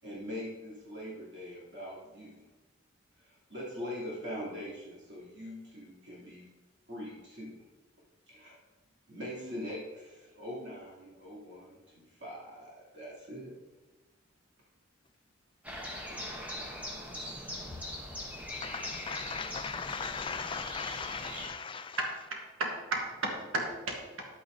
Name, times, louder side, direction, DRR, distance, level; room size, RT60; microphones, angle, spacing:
voice 1, 0.0-2.4 3.2-6.5 6.9-7.6 8.3-8.6 9.1-13.5 16.1-16.3, equal, 60° right, 3.0 m, -42 dB
sound 1, 15.6-21.5, left 1 dB, 5° right, 1.0 m, -41 dB
voice 2, 18.5-22.0, left 5 dB, 25° left, 0.3 m, -38 dB
voice 3, 22.0-24.3, right 2 dB, 85° right, 1.4 m, -34 dB
10.5 x 8.5 x 2.7 m
head